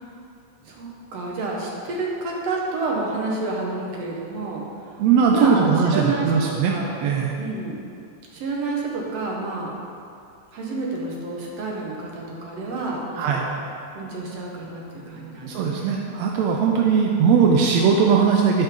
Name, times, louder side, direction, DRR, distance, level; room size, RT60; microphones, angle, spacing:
voice 1, 0.6-4.6 5.3-6.3 6.7-6.9 7.4-7.8 8.3-9.7 10.5-13.6 13.9-16.1, right 3 dB, 60° right, -2 dB, 2.2 m, -29 dB
voice 2, 5.0-7.4 13.2-13.5 15.4-18.6, right 6 dB, 80° right, 0 dB, 1.6 m, -19 dB
11.0 x 5.4 x 5.3 m, 2.5 s
omnidirectional pair, 3.6 m